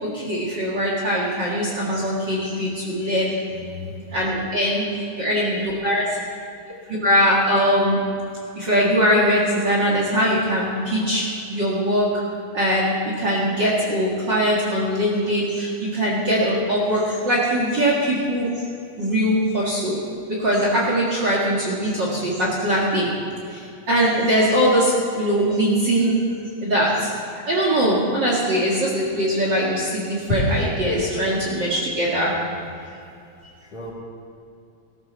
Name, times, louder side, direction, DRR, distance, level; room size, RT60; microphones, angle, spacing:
voice 1, 0.0-3.3 4.1-4.8 5.2-6.0 7.0-8.0 8.6-11.2 11.5-12.1 12.5-12.9 13.2-18.5 19.0-20.0 20.4-23.1 23.9-26.1 26.6-26.9 27.5-32.3, equal, 40° right, -4 dB, 2.1 m, -21 dB
voice 2, 3.5-4.0 26.3-26.4 32.1-32.2 32.5-32.6 33.7-33.9, left 3 dB, 50° left, -5 dB, 3.6 m, -37 dB
17.0 x 14.0 x 4.1 m, 2.5 s
omnidirectional pair, 3.7 m